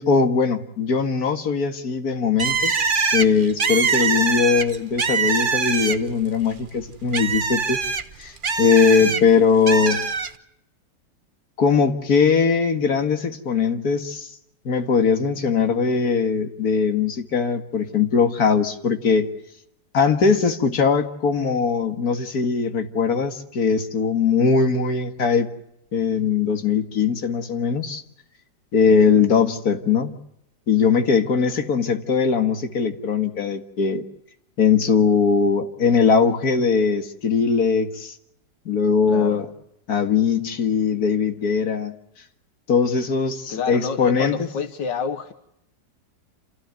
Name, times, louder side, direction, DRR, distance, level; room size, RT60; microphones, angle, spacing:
voice 1, 0.0-2.7 3.1-7.8 8.2-8.3 8.6-10.0 11.6-14.3 14.7-19.3 19.9-25.5 25.9-28.0 28.7-30.1 30.7-34.0 34.6-38.1 38.7-39.5 39.9-41.9 42.7-44.5, left 5 dB, 55° left, 6 dB, 2.3 m, -20 dB
Bird, 2.4-6.2 6.6-9.2 9.7-10.3, right 5 dB, 35° right, 1.0 m, -23 dB
voice 2, 28.9-29.3 39.1-39.4 43.5-45.3, left 6 dB, 80° left, 8 dB, 1.9 m, -29 dB
28.0 x 16.0 x 9.4 m, 0.78 s
omnidirectional pair, 1.9 m